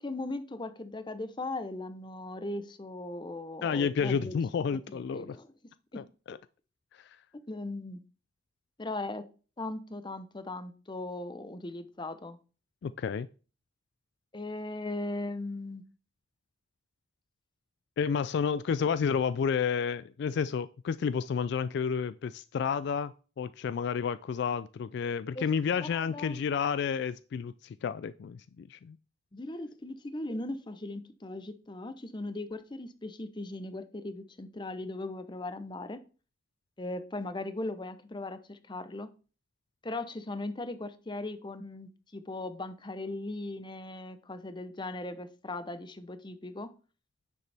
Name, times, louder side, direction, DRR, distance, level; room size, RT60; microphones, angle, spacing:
voice 1, 0.0-4.3 4.7-5.5 5.9-6.0 7.5-8.0 8.8-9.3 9.6-12.4 14.3-15.8 25.3-25.5 25.9-26.4 29.3-36.0 36.8-39.1 39.8-46.7, left 2 dB, 25° left, 11 dB, 0.7 m, -38 dB
voice 2, 3.6-5.4 5.9-6.4 7.0-7.1 12.8-13.3 18.0-29.0, left 6 dB, 60° left, 15 dB, 0.3 m, -31 dB
9.8 x 6.9 x 3.4 m, 0.37 s
head